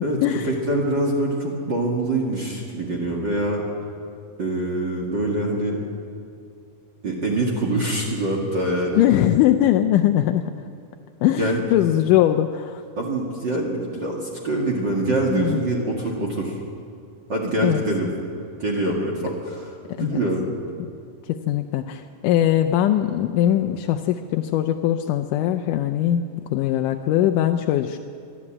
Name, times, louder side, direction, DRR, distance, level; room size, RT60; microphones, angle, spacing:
voice 1, 0.0-3.6 4.4-5.8 7.0-9.0 11.4-11.6 13.0-16.6 17.3-18.1 18.6-20.5, right 1 dB, 40° right, -1 dB, 2.3 m, -24 dB
voice 2, 9.0-10.5 11.2-12.8 15.3-15.6 17.6-17.8 20.0-20.2 21.3-28.0, left 12 dB, 80° left, 5 dB, 2.2 m, -21 dB
24.0 x 12.5 x 8.7 m, 2.4 s
omnidirectional pair, 3.7 m